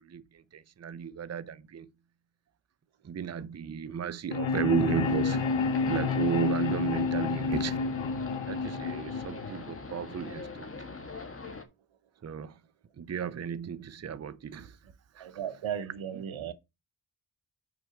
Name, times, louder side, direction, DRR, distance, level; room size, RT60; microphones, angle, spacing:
voice 1, 0.0-1.9 3.0-5.5 5.9-7.8 8.4-10.7 12.2-12.5 13.0-14.8 15.2-15.4, right 7 dB, 35° right, 0.6 m, -34 dB
sound 1, 4.3-10.3, left 4 dB, 90° left, 1.0 m, -30 dB
sound 2, 5.0-11.6, left 3 dB, 30° left, 1.5 m, -42 dB
voice 2, 15.2-16.5, right 9 dB, 90° right, 0.9 m, -35 dB
6.0 x 4.9 x 5.7 m
wide cardioid pair, 95°, 46 cm